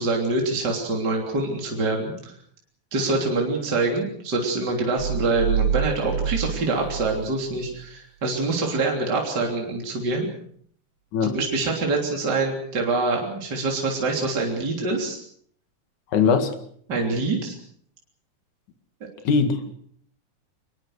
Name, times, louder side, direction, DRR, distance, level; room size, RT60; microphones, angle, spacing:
voice 1, 0.0-2.3 2.9-10.3 11.2-15.2 16.9-17.5, right 3 dB, 35° right, 3.8 m, -25 dB
sound 1, 5.0-7.8, right 7 dB, 75° right, 2.6 m, -27 dB
voice 2, 16.1-16.5 19.3-19.7, left 5 dB, 85° left, 3.5 m, -21 dB
24.0 x 21.5 x 6.5 m
omnidirectional pair, 3.3 m